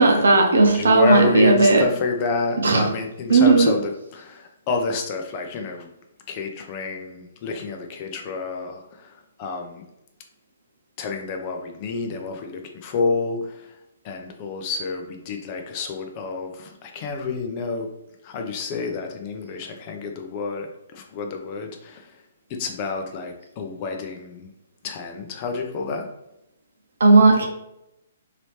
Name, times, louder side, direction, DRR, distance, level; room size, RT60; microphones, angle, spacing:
voice 1, 0.0-1.8 2.6-2.9 3.3-3.7 27.0-27.5, right 3 dB, 80° right, 2 dB, 0.8 m, -15 dB
voice 2, 0.7-5.9 6.3-9.8 11.0-13.8 14.0-17.9 18.2-22.1 22.5-24.5 24.8-26.1, left 4 dB, 35° left, 3 dB, 0.6 m, -29 dB
3.0 x 2.8 x 3.2 m, 0.84 s
hypercardioid pair, 140°, 0 cm